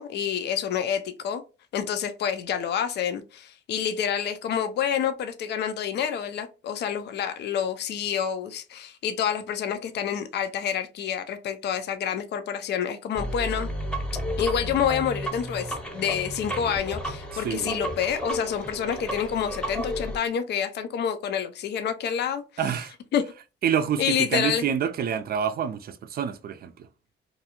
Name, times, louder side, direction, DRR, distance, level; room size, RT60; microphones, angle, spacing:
voice 1, 0.0-1.4 1.7-13.7 14.4-22.4 23.1-23.2 24.0-24.6, left 8 dB, 60° left, 0.4 m, -28 dB
sound 1, 13.2-20.2, equal, 5° left, 0.7 m, -32 dB
voice 2, 17.3-17.8 22.6-22.9 23.6-26.9, right 8 dB, 50° right, 0.4 m, -27 dB
2.6 x 2.3 x 2.8 m
cardioid pair, 90°, 20 cm